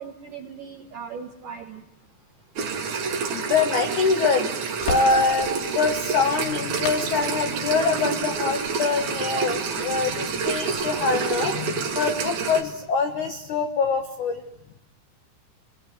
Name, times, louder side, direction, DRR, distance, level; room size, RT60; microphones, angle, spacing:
voice 1, 0.0-2.1, right 6 dB, 70° right, 4 dB, 2.0 m, -39 dB
sound 1, 2.6-12.6, right 5 dB, 50° right, 2.5 m, -28 dB
voice 2, 3.3-4.5 4.9-14.4, left 4 dB, 80° left, 6 dB, 1.7 m, -24 dB
Crackle, 4.8-12.7, left 3 dB, 60° left, 5.4 m, -41 dB
26.5 x 22.5 x 9.4 m, 0.78 s
omnidirectional pair, 5.9 m